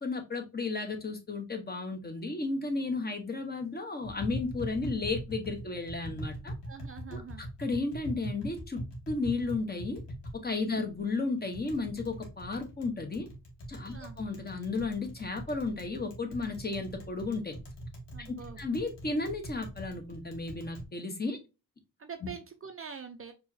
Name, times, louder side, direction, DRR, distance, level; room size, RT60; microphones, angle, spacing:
voice 1, 0.0-6.5 7.1-8.8 9.1-10.0 10.4-13.3 13.7-17.6 18.2-21.4, left 3 dB, 25° left, 5 dB, 1.0 m, -34 dB
Tap, 4.0-20.9, equal, 90° left, 1.7 m, -42 dB
voice 2, 6.7-7.4 10.7-10.8 13.9-14.2 18.1-18.6 22.0-23.3, right 6 dB, 35° right, 6 dB, 0.6 m, -44 dB
4.7 x 3.0 x 2.7 m, 0.28 s
cardioid pair, 105°, 40 cm